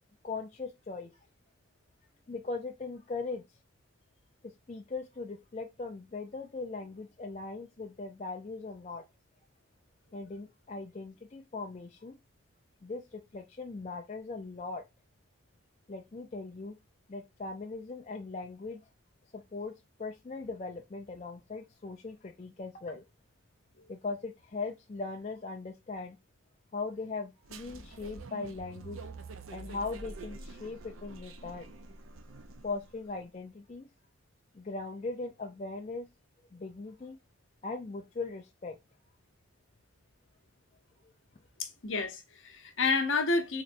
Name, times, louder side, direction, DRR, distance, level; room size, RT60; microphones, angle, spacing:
voice 1, 0.2-1.1 2.3-3.4 4.7-9.0 10.1-12.1 12.8-14.8 15.9-16.7 17.1-18.8 19.3-19.7 20.0-23.0 23.9-26.2 26.7-29.0 29.5-31.7 32.6-33.9 34.5-36.1 36.5-37.2 37.6-38.8, left 3 dB, 30° left, 0.4 m, -39 dB
sound 1, 27.4-33.0, right 3 dB, 75° right, 0.5 m, -47 dB
voice 2, 41.6-43.6, left 3 dB, 65° left, 0.9 m, -30 dB
4.0 x 3.1 x 2.5 m
head